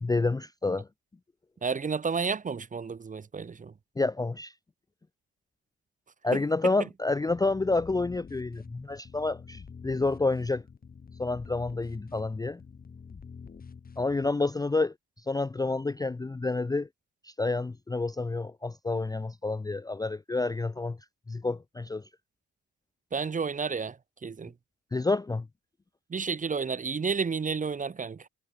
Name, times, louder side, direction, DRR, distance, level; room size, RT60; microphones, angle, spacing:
voice 1, 0.0-0.9 4.0-4.5 6.2-10.6 11.2-12.6 14.0-14.9 15.3-16.9 17.2-21.0 21.3-22.0 24.9-25.4, left 3 dB, 15° left, 0.5 m, -29 dB
voice 2, 1.6-3.7 6.3-6.7 23.1-24.5 26.1-28.3, right 5 dB, 25° right, 0.8 m, -31 dB
sound 1, 7.3-14.3, left 5 dB, 30° left, 1.3 m, -47 dB
cardioid pair, 90°, 30 cm